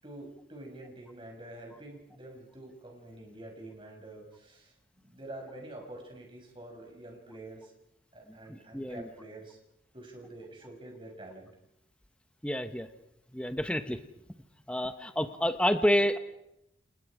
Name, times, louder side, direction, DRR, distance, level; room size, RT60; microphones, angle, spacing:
voice 1, 0.0-4.7 5.0-7.7 8.1-9.6 9.9-11.5, right 1 dB, 30° right, 1 dB, 6.4 m, -47 dB
voice 2, 8.7-9.1 12.4-12.9 13.3-14.0 14.7-16.2, equal, 5° left, 8 dB, 1.1 m, -28 dB
29.5 x 29.5 x 5.0 m, 0.81 s
head